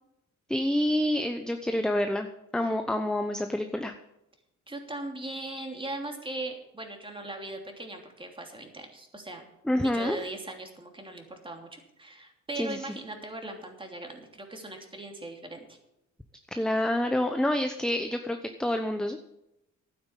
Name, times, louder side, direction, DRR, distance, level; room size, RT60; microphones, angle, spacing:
voice 1, 0.5-2.3 2.5-3.9 9.6-10.2 12.6-12.9 16.5-19.3, left 1 dB, ahead, 6 dB, 0.9 m, -28 dB
voice 2, 4.7-9.4 9.7-15.8, right 2 dB, 15° right, 3 dB, 3.0 m, -39 dB
12.0 x 9.5 x 7.4 m, 0.87 s
cardioid pair, 90°, 30 cm